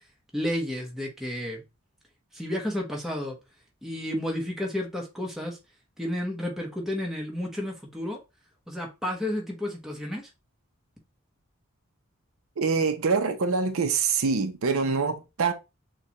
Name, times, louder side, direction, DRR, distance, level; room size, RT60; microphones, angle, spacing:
voice 1, 0.3-1.6 2.3-3.4 3.8-5.6 6.0-8.2 8.7-10.3, left 1 dB, ahead, 0.9 m, -31 dB
voice 2, 12.6-15.5, right 5 dB, 65° right, 0.6 m, -25 dB
6.6 x 2.2 x 2.9 m
head